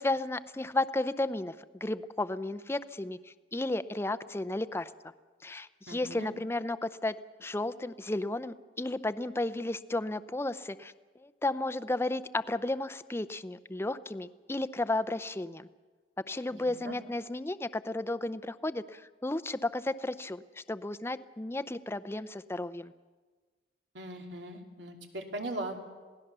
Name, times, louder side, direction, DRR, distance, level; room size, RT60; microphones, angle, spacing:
voice 1, 0.0-1.5 1.8-3.2 3.5-4.9 5.4-10.9 11.2-15.7 16.3-22.9, left 2 dB, 15° left, 14 dB, 0.6 m, -33 dB
voice 2, 5.9-6.3 16.5-17.0 23.9-25.8, right 1 dB, 80° right, 3 dB, 2.7 m, -39 dB
27.0 x 17.5 x 6.8 m, 1.4 s
head